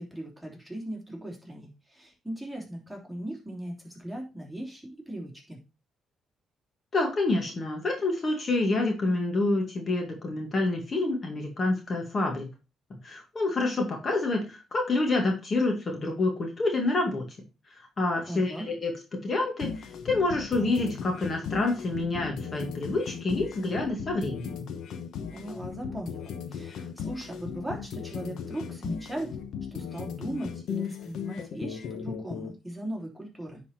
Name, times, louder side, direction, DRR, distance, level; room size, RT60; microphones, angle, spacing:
voice 1, 0.0-5.6 18.3-18.7 25.3-29.4 29.7-33.6, right 1 dB, 5° right, -1 dB, 3.2 m, -38 dB
voice 2, 6.9-12.5 13.0-17.3 18.0-19.7 20.0-24.6, left 2 dB, 40° left, 2 dB, 2.0 m, -27 dB
sound 1, 19.6-32.5, left 7 dB, 75° left, 1.1 m, -37 dB
9.7 x 4.3 x 4.4 m, 0.30 s
cardioid pair, 90°, 0 cm